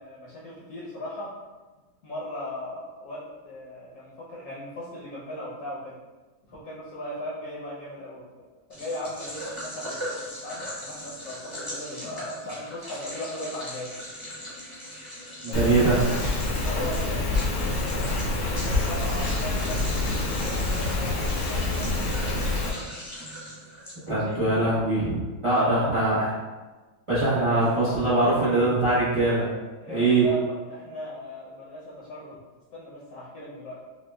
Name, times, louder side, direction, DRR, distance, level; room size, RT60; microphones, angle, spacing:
voice 1, 0.0-1.3 2.0-5.9 6.4-13.9 15.5-15.7 16.6-22.7 24.0-24.4 25.6-26.0 27.3-28.7 29.8-32.4 32.7-33.8, left 1 dB, 60° left, -7 dB, 1.1 m, -38 dB
sound 1, 8.7-24.3, equal, 15° left, 0.8 m, -39 dB
voice 2, 15.4-16.0 24.1-26.3 27.1-29.5 29.9-30.2, right 2 dB, 45° right, -11 dB, 0.4 m, -22 dB
Rain, 15.5-22.7, left 2 dB, 80° left, 1.6 m, -27 dB
6.1 x 2.2 x 2.2 m, 1.2 s
omnidirectional pair, 2.2 m